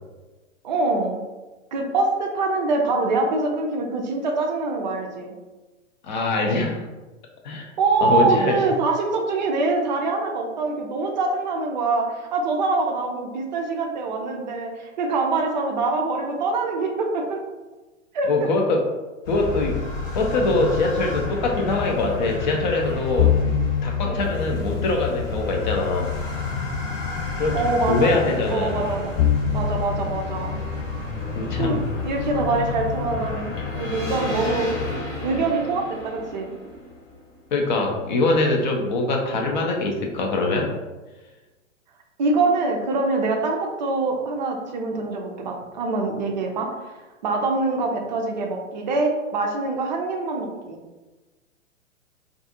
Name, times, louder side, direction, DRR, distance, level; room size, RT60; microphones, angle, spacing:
voice 1, 0.6-1.2 1.7-5.3 7.8-17.4 18.1-18.3 24.0-24.3 27.5-29.2 29.5-30.6 31.6-34.7 35.2-36.5 42.2-46.7 47.2-50.8, right 3 dB, 35° right, 2 dB, 0.4 m, -24 dB
voice 2, 6.0-6.8 7.4-7.7 8.0-8.6 18.3-18.8 19.3-19.8 20.1-23.4 23.8-26.1 27.4-27.6 27.9-28.9 31.0-31.8 37.5-40.7, left 2 dB, 35° left, 1 dB, 0.5 m, -23 dB
sound 1, 19.3-37.2, left 6 dB, 60° left, 1.2 m, -27 dB
2.4 x 2.4 x 2.6 m, 1.2 s
figure-of-eight pair, 110°, 39 cm